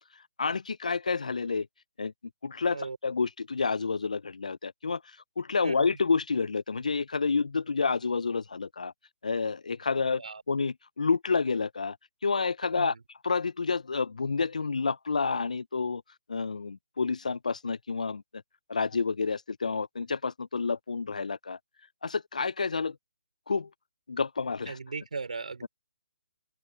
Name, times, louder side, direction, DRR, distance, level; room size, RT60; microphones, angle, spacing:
voice 1, 0.4-1.7 2.0-2.1 2.4-8.9 9.2-10.2 10.5-12.0 12.2-13.0 13.2-16.0 16.3-18.4 18.7-21.6 22.0-23.0 23.5-23.7 24.1-24.8 25.6-25.7, left 4 dB, 80° left, 0.5 m, -29 dB
voice 2, 5.6-6.0 10.2-10.4 12.8-13.0 24.7-25.7, right 4 dB, 75° right, 3.1 m, -38 dB
open air
figure-of-eight pair, 145°, 4 cm